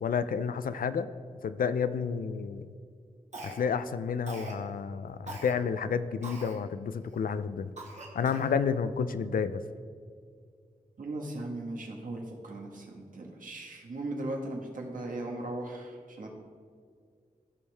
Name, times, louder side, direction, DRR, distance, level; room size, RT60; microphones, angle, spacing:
voice 1, 0.0-1.1 1.4-2.7 3.4-7.7 8.1-9.6, left 6 dB, 90° left, 13 dB, 0.4 m, -30 dB
Cough, 3.3-3.8 4.3-4.6 5.3-5.5 6.2-6.6 7.1-7.2 7.8-8.5, right 2 dB, 55° right, 1.7 m, -43 dB
voice 2, 11.0-16.3, right 2 dB, 75° right, 0 dB, 1.4 m, -38 dB
15.5 x 5.4 x 3.4 m, 2.1 s
wide cardioid pair, 115°, 14 cm